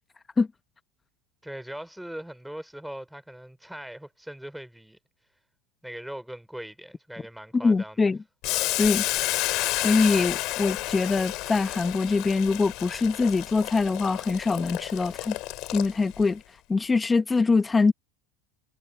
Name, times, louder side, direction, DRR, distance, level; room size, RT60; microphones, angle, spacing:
voice 1, 1.4-5.0 5.8-8.1, right 1 dB, 5° right, 4.3 m, -40 dB
voice 2, 7.6-8.2 8.8-9.0 9.8-15.4 15.7-16.4 16.7-17.9, left 4 dB, 20° left, 1.0 m, -23 dB
Boiling, 8.4-16.2, left 19 dB, 60° left, 2.2 m, -31 dB
hypercardioid pair, 90°, 0 cm